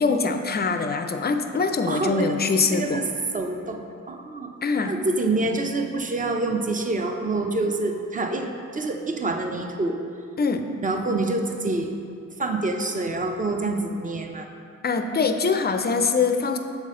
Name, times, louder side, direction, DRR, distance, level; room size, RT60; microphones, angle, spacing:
voice 1, 0.0-3.0 4.6-4.9 10.4-10.6 14.8-16.6, left 4 dB, 30° left, 7 dB, 0.4 m, -23 dB
voice 2, 1.9-2.4 2.7-3.1 3.3-4.5 4.9-10.0 10.8-11.9 12.4-14.5, right 2 dB, 25° right, 4 dB, 0.6 m, -26 dB
7.2 x 4.0 x 3.7 m, 2.4 s
cardioid pair, 75°, 34 cm